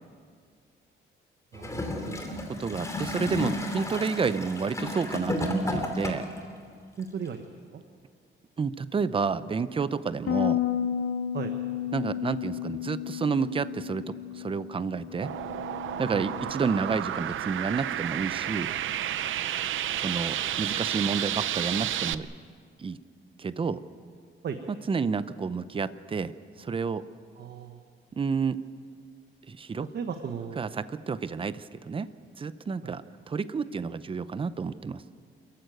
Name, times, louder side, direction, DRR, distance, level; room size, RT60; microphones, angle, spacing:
Gurgling / Toilet flush, 1.5-6.4 7.3-7.4, left 1 dB, 15° left, 2.8 m, -32 dB
voice 1, 1.5-2.3 7.0-7.4 7.7-7.8 11.3-11.5 16.1-16.2 24.4-24.6 27.4-27.8 29.9-30.6 32.8-33.0, right 7 dB, 55° right, 7 dB, 1.2 m, -36 dB
voice 2, 2.5-6.3 8.6-10.6 11.9-15.3 16.0-18.7 20.0-22.3 22.8-23.0 23.4-23.8 24.9-26.3 26.6-27.0 28.2-28.6 29.5-29.9 30.6-32.1 32.4-35.0, right 5 dB, 25° right, 14 dB, 0.7 m, -30 dB
Bass guitar, 10.3-16.5, left 10 dB, 65° left, 1.2 m, -32 dB
sound 1, 15.2-22.1, right 11 dB, 70° right, 0.7 m, -31 dB
27.5 x 14.5 x 9.2 m, 2.1 s
cardioid pair, 145°, 21 cm